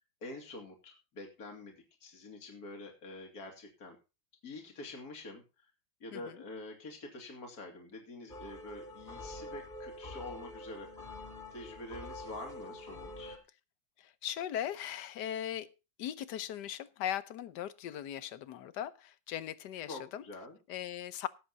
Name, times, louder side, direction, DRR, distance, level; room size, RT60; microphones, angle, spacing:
voice 1, 0.2-1.7 2.0-4.0 4.4-5.4 6.0-11.1 11.5-13.4 19.9-20.6, left 2 dB, 50° left, 2 dB, 3.0 m, -46 dB
sound 1, 8.3-13.4, left 1 dB, 25° left, 2.5 m, -46 dB
voice 2, 14.2-15.7 16.0-20.2 20.7-21.3, left 10 dB, 70° left, 16 dB, 1.3 m, -38 dB
17.0 x 7.9 x 4.0 m, 0.30 s
omnidirectional pair, 2.0 m